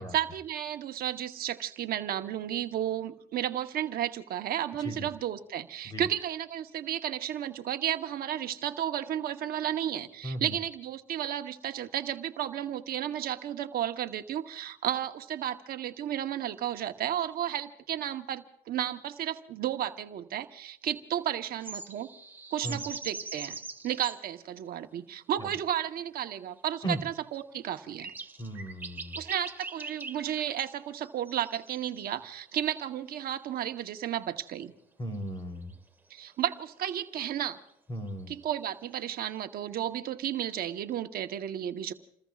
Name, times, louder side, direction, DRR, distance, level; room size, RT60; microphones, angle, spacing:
voice 1, 0.0-22.1 22.5-23.6 23.8-28.1 29.2-34.7 36.1-37.6 38.3-41.9, right 11 dB, 60° right, 7 dB, 1.0 m, -33 dB
voice 2, 10.2-10.5 22.6-22.8 25.4-25.5 26.8-27.0 28.4-29.2 35.0-35.7 37.9-38.3, right 1 dB, 25° left, 5 dB, 3.5 m, -36 dB
sound 1, 21.6-24.2 26.0-26.1 27.3-27.4 27.9-30.7 31.0-32.4 32.8-32.9 35.4-35.5 35.7-35.8 38.1-38.6, right 3 dB, 10° right, 1.8 m, -42 dB
29.5 x 20.5 x 2.4 m, 0.70 s
cardioid pair, 110°, 17 cm